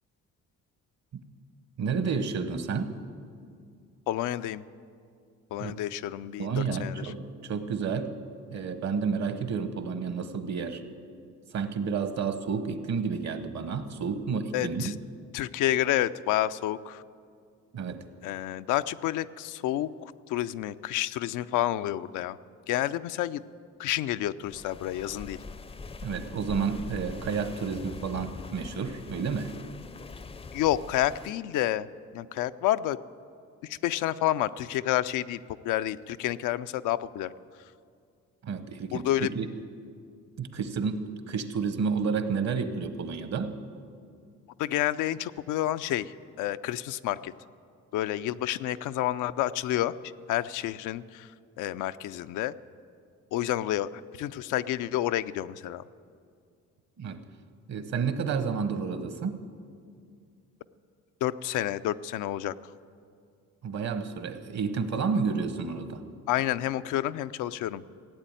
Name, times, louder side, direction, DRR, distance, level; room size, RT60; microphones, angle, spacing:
voice 1, 1.8-2.9 5.6-5.8 6.4-8.1 8.5-10.8 11.5-15.0 17.7-18.0 26.0-29.5 38.4-39.5 40.4-43.6 57.0-57.2 57.7-59.5 63.6-66.0, right 5 dB, 65° right, 10 dB, 1.2 m, -30 dB
voice 2, 4.1-4.6 5.5-7.0 14.5-14.9 15.3-17.0 18.2-19.9 20.3-22.4 22.7-23.4 23.8-25.4 30.5-31.9 32.1-33.0 33.6-37.3 38.9-39.3 44.6-47.3 47.9-49.9 50.3-51.3 51.6-52.5 53.3-53.9 54.2-55.8 61.2-62.5 66.3-67.8, left 13 dB, 90° left, 12 dB, 0.5 m, -29 dB
sound 1, 24.4-31.3, left 4 dB, 20° left, 0.4 m, -43 dB
16.0 x 8.2 x 9.0 m, 2.3 s
cardioid pair, 90°, 30 cm